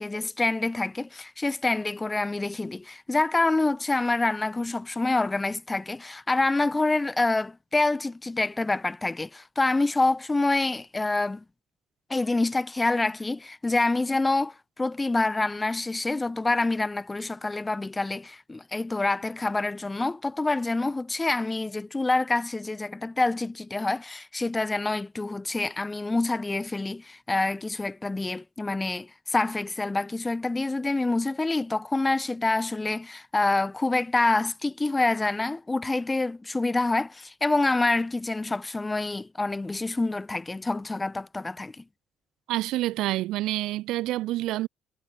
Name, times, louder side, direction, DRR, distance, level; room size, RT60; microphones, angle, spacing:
voice 1, 0.0-11.4 12.1-41.8, left 2 dB, 20° left, 0.5 m, -27 dB
voice 2, 42.5-44.7, right 16 dB, 65° right, 0.3 m, -28 dB
figure-of-eight pair, 50°, 0 cm